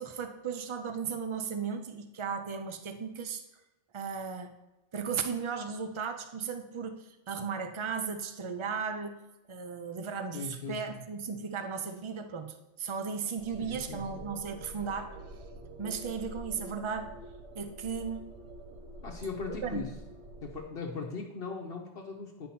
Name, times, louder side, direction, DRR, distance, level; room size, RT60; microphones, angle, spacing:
voice 1, 0.0-3.4 3.9-4.6 4.9-9.2 9.5-15.2 15.8-17.1 17.5-18.3 19.6-19.8, right 6 dB, 35° right, 8 dB, 0.6 m, -36 dB
voice 2, 10.3-11.1 13.6-14.3 19.0-19.9 20.4-22.5, left 4 dB, 65° left, 1 dB, 1.1 m, -39 dB
sound 1, 13.4-20.6, right 1 dB, 85° right, 1.2 m, -46 dB
9.4 x 5.7 x 4.3 m, 1.0 s
omnidirectional pair, 1.1 m